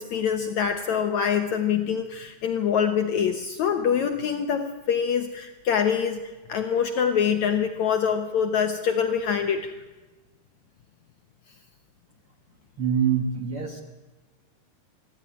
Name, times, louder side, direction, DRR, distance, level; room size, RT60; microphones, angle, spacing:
voice 1, 0.0-9.7, left 7 dB, 85° left, 7 dB, 1.6 m, -25 dB
voice 2, 12.8-13.8, right 7 dB, 70° right, 5 dB, 1.3 m, -25 dB
24.5 x 14.5 x 9.9 m, 1.2 s
omnidirectional pair, 4.8 m